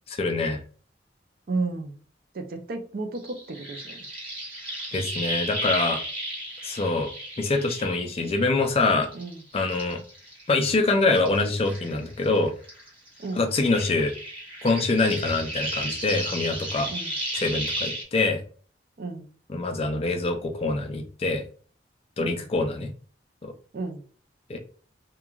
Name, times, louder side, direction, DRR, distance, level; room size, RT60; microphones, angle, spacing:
voice 1, 0.1-0.6 4.9-6.0 6.6-7.1 7.4-9.1 9.5-10.0 10.5-12.5 13.3-14.1 14.6-16.9 17.3-18.4 19.5-21.4 22.2-22.9 23.4-23.5 24.5-24.6, left 3 dB, 35° left, 4 dB, 0.4 m, -25 dB
voice 2, 1.5-2.0 2.3-4.1 9.1-9.4 13.2-13.4 16.9-17.2 19.0-19.3 22.2-22.4 23.7-24.0, right 3 dB, 55° right, 5 dB, 0.4 m, -33 dB
sound 1, 3.1-8.7 9.0-12.4 12.6-18.0, right 1 dB, 30° right, 1.0 m, -34 dB
3.0 x 2.2 x 2.3 m, 0.42 s
head